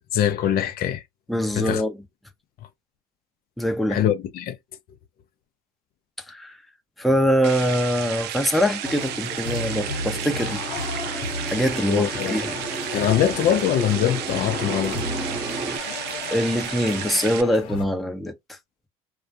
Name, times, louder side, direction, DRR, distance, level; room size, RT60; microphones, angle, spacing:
voice 1, 0.1-1.0 1.5-1.8 3.9-4.6 11.9-12.5 12.9-15.0, left 10 dB, 55° left, 0.5 m, -23 dB
voice 2, 1.3-2.0 3.6-4.0 6.3-6.6 7.0-10.6 11.4-12.5 15.8-15.9 16.3-18.6, equal, ahead, 0.7 m, -23 dB
sound 1, 7.4-17.4, right 11 dB, 65° right, 0.5 m, -33 dB
sound 2, 8.2-15.8, right 3 dB, 25° right, 0.9 m, -35 dB
sound 3, 8.8-17.8, left 4 dB, 85° left, 0.8 m, -34 dB
2.3 x 2.2 x 2.7 m
supercardioid pair, 85°, 19 cm